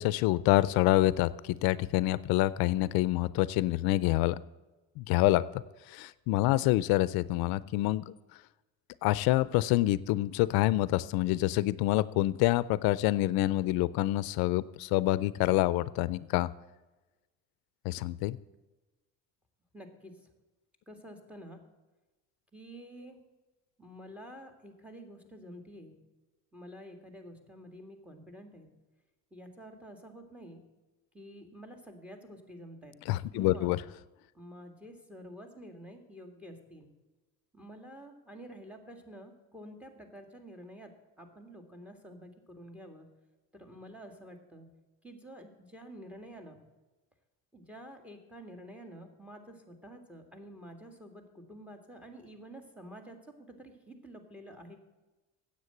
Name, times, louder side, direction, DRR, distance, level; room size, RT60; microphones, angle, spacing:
voice 1, 0.0-4.4 5.0-5.4 5.9-8.1 9.0-16.5 17.9-18.4 33.1-33.8, left 17 dB, 85° left, 18 dB, 0.5 m, -27 dB
voice 2, 19.7-20.3 20.9-21.6 22.5-23.2 23.8-26.0 26.5-28.7 29.3-30.6 31.1-33.0 33.3-33.7 34.3-36.9 37.5-43.1 43.5-44.7 45.0-46.6 47.5-54.8, equal, 5° right, 6 dB, 2.0 m, -49 dB
9.6 x 8.0 x 7.8 m, 1.1 s
cardioid pair, 115°, 36 cm